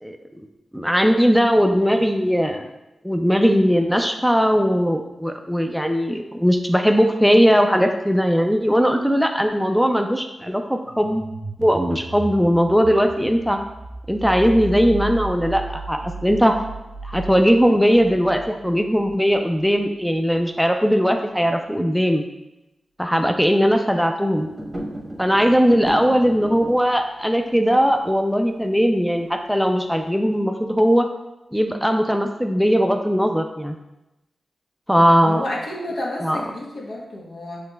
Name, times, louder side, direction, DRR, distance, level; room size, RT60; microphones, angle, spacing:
voice 1, 0.0-0.4 0.7-2.7 3.0-11.2 11.6-13.6 14.1-16.6 17.0-22.2 23.0-24.5 25.2-31.1 31.5-33.8 34.9-35.5 36.2-36.4, equal, ahead, 5 dB, 0.4 m, -19 dB
sound 1, 10.8-19.5, right 2 dB, 85° right, 0.6 m, -35 dB
sound 2, 24.3-26.9, right 1 dB, 25° right, 0.8 m, -34 dB
voice 2, 35.2-37.6, left 1 dB, 70° left, -3 dB, 1.0 m, -30 dB
5.9 x 3.2 x 2.2 m, 0.98 s
cardioid pair, 50°, 0 cm